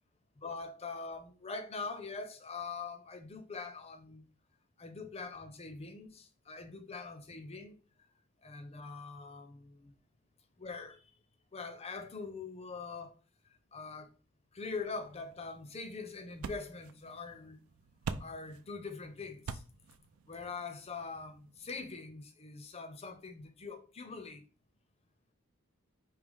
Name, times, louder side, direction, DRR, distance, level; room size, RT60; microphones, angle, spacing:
voice 1, 0.4-4.3 4.8-8.1 8.4-10.0 10.6-11.1 11.5-13.2 13.4-14.1 14.5-17.6 18.2-19.6 20.3-24.4, left 4 dB, 30° left, 0.5 m, -43 dB
sound 1, 14.7-21.8, right 5 dB, 75° right, 0.4 m, -47 dB
4.9 x 2.8 x 3.7 m
head